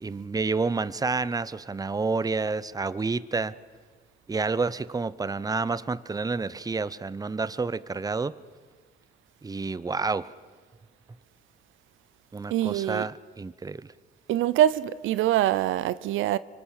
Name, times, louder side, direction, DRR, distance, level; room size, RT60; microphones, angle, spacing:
voice 1, 0.0-3.5 4.3-8.3 9.4-10.3 12.3-13.9, right 4 dB, 20° right, 0.8 m, -29 dB
voice 2, 12.5-13.1 14.3-16.4, right 12 dB, 85° right, 0.6 m, -24 dB
25.0 x 24.5 x 6.6 m
cardioid pair, 90°, 20 cm